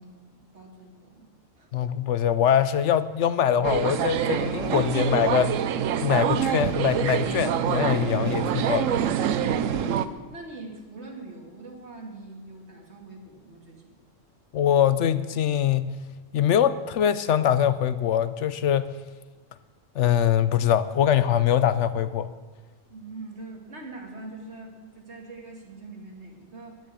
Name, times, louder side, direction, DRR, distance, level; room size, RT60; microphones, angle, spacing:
voice 1, 0.0-1.7 9.4-14.0 22.9-26.8, right 2 dB, 60° right, 0 dB, 2.6 m, -43 dB
voice 2, 1.7-5.5 6.0-8.9 14.5-16.0 16.3-18.9 20.0-22.3, left 9 dB, 70° left, 14 dB, 0.9 m, -23 dB
sound 1, 3.6-10.1, right 9 dB, 80° right, 1.0 m, -25 dB
11.0 x 10.5 x 8.3 m, 1.3 s
omnidirectional pair, 1.3 m